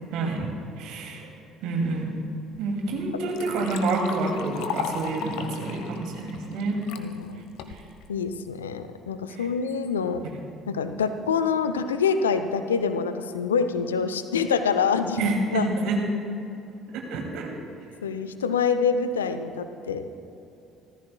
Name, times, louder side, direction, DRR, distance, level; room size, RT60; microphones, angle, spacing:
voice 1, 0.1-1.3 1.6-2.1 2.6-6.8 7.7-7.8 9.3-9.5 10.2-10.4 15.2-16.0 16.9-17.5, right 2 dB, 60° right, 1 dB, 2.5 m, -28 dB
Liquid, 2.5-2.6 3.0-7.0 7.6-8.1, left 7 dB, 65° left, 0.9 m, -36 dB
voice 2, 7.0-7.4 8.1-10.2 10.7-15.6 18.0-20.0, left 6 dB, 80° left, 10 dB, 0.6 m, -26 dB
27.5 x 14.5 x 2.3 m, 2.9 s
figure-of-eight pair, 55°, 0 cm